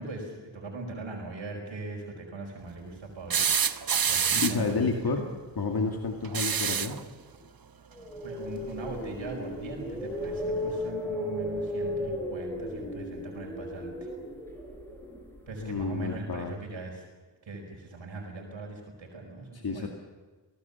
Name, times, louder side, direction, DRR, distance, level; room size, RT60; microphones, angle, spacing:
voice 1, 0.0-5.0 8.2-14.1 15.5-17.1 17.4-19.9, right 2 dB, 80° right, 1 dB, 4.9 m, -40 dB
sound 1, 3.3-4.7 6.2-7.0 8.7-8.8 10.2-10.3, right 7 dB, 50° right, 1.0 m, -27 dB
voice 2, 4.3-5.3 5.6-7.0 15.6-16.6 19.6-19.9, left 4 dB, 55° left, 1 dB, 2.3 m, -30 dB
sound 2, 7.9-16.0, left 1 dB, 5° left, 4.9 m, -35 dB
26.5 x 18.5 x 7.1 m, 1.3 s
wide cardioid pair, 120°, 45 cm